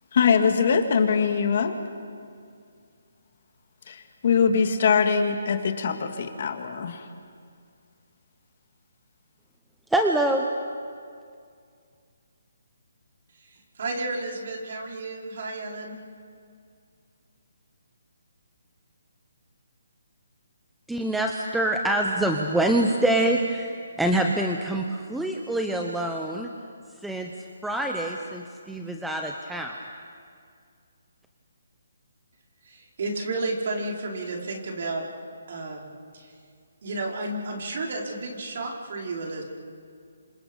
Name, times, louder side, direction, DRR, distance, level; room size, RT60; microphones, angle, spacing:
voice 1, 0.1-1.8 3.9-7.1, left 6 dB, 50° left, 6 dB, 2.2 m, -22 dB
voice 2, 9.9-10.4 20.9-26.5 27.0-27.3 27.6-29.8, right 1 dB, 5° right, 2 dB, 0.9 m, -25 dB
voice 3, 13.3-16.0 32.6-35.0 35.5-36.3 36.8-39.4, right 2 dB, 55° right, -1 dB, 4.7 m, -32 dB
28.0 x 26.5 x 5.4 m, 2.2 s
hypercardioid pair, 160°, 0 cm